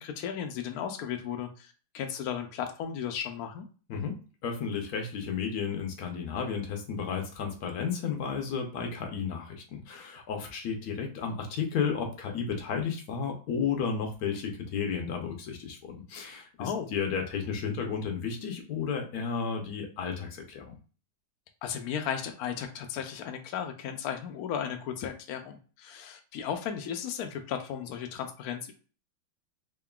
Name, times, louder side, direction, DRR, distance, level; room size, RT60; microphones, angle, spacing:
voice 1, 0.0-3.7 16.6-16.9 21.6-28.7, left 8 dB, 80° left, 5 dB, 0.8 m, -35 dB
voice 2, 3.9-20.7, left 6 dB, 60° left, 3 dB, 1.1 m, -33 dB
3.7 x 3.6 x 2.3 m, 0.37 s
omnidirectional pair, 2.2 m